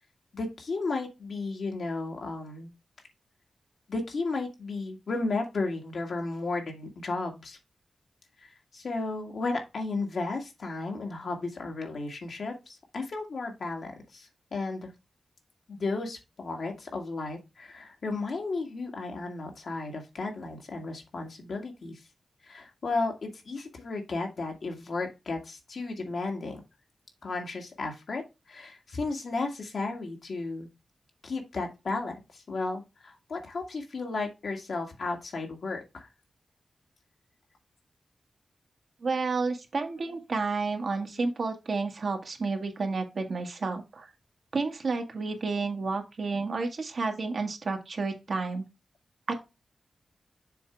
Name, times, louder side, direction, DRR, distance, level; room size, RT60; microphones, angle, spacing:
voice 1, 0.3-2.7 3.9-7.6 8.7-14.9 15.7-22.0 22.5-26.6 27.2-28.2 28.5-30.7 31.2-36.1 40.1-40.2, left 3 dB, 70° left, 2 dB, 1.9 m, -34 dB
voice 2, 39.0-44.1 44.5-48.6 49.3-49.4, right 4 dB, 65° right, 4 dB, 1.6 m, -31 dB
6.9 x 3.7 x 4.5 m, 0.25 s
cardioid pair, 65°, 0 cm